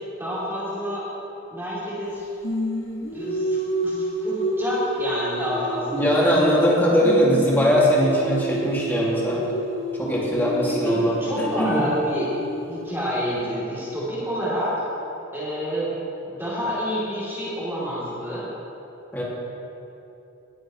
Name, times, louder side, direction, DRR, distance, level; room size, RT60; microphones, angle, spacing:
voice 1, 0.2-1.1 1.5-2.3 3.1-3.6 3.8-6.4 10.7-12.3 12.7-14.9 15.3-15.9 16.3-18.5, equal, 10° right, -9 dB, 2.9 m, -28 dB
Singing, 2.4-6.7 7.0-13.0, right 1 dB, 75° left, 1.6 m, -30 dB
voice 2, 5.9-9.5 9.9-11.8 19.1-19.2, equal, 10° left, -6 dB, 2.1 m, -21 dB
19.0 x 8.9 x 3.1 m, 2.9 s
head